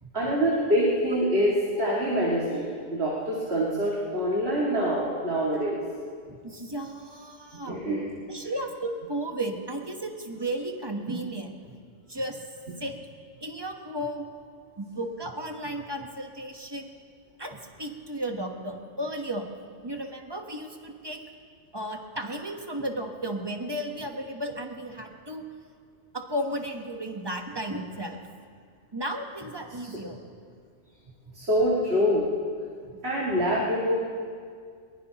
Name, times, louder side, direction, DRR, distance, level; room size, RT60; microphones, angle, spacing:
voice 1, 0.1-5.8 7.7-8.0 29.8-29.9 31.3-32.2 33.0-34.0, equal, 65° right, -6 dB, 2.4 m, -25 dB
voice 2, 6.3-7.8 8.3-11.5 12.1-12.4 12.8-13.0 13.4-14.3 14.8-16.9 17.4-19.5 19.8-21.2 21.7-25.5 26.1-28.2 28.9-30.2 32.8-33.0, right 1 dB, 20° right, 3 dB, 1.1 m, -34 dB
22.0 x 20.0 x 3.0 m, 2.1 s
omnidirectional pair, 1.2 m